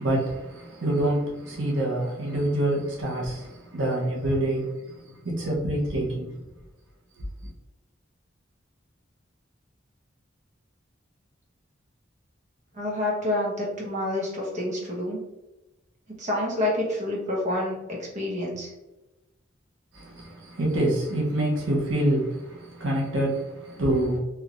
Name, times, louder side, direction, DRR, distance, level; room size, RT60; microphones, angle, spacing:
voice 1, 0.0-6.4 19.9-24.2, right 1 dB, 85° right, 0.9 m, -26 dB
voice 2, 12.7-15.2 16.2-18.7, left 1 dB, 40° right, 1.0 m, -28 dB
3.3 x 2.9 x 2.5 m
head